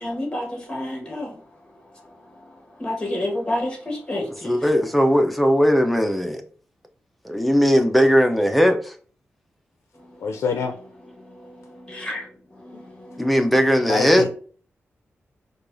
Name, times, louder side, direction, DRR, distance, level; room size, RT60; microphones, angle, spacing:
voice 1, 0.0-1.3 2.8-4.6 11.9-12.2 13.1-13.4, left 1 dB, 20° left, 1.4 m, -29 dB
voice 2, 4.4-6.4 7.2-8.9 13.2-14.2, equal, ahead, 0.5 m, -18 dB
voice 3, 10.2-10.8 12.7-12.8 13.8-14.3, left 5 dB, 90° left, 0.4 m, -26 dB
4.5 x 2.3 x 2.5 m
cardioid pair, 85°, 5 cm